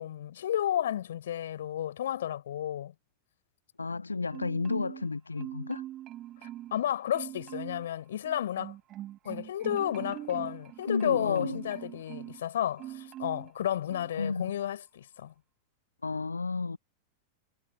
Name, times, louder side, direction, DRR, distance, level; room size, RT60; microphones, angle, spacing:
voice 1, 0.0-2.9 6.4-8.7 9.2-15.3, left 11 dB, 60° left, 5.9 m, -32 dB
voice 2, 3.8-5.8 10.9-11.6 14.2-14.5 16.0-16.8, left 4 dB, 80° left, 1.4 m, -32 dB
Marimba xylophone, 4.3-5.1 5.4-6.8 7.1-7.9 8.2-12.4 12.8-13.5 13.9-14.1, right 13 dB, 35° right, 6.4 m, -42 dB
figure-of-eight pair, 90°, 0 cm